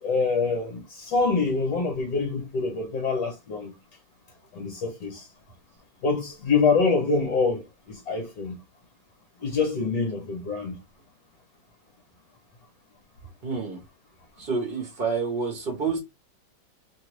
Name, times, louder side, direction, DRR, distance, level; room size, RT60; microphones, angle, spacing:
voice 1, 0.0-3.7 4.5-5.3 6.0-8.6 9.4-10.8, left 4 dB, 65° left, 1.3 m, -25 dB
voice 2, 13.4-13.8 14.4-16.0, right 4 dB, 45° right, 0.7 m, -28 dB
2.9 x 2.2 x 3.1 m
omnidirectional pair, 1.9 m